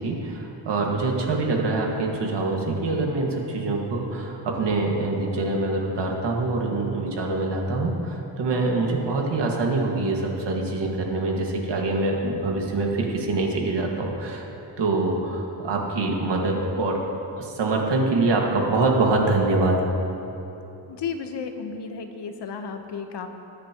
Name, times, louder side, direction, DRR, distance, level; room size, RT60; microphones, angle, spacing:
voice 1, 0.0-14.4 14.8-17.1 17.4-19.8, right 2 dB, 70° right, 0 dB, 1.9 m, -24 dB
voice 2, 20.9-23.3, left 6 dB, 65° left, 6 dB, 1.1 m, -33 dB
21.0 x 9.8 x 3.0 m, 2.9 s
wide cardioid pair, 135°, 44 cm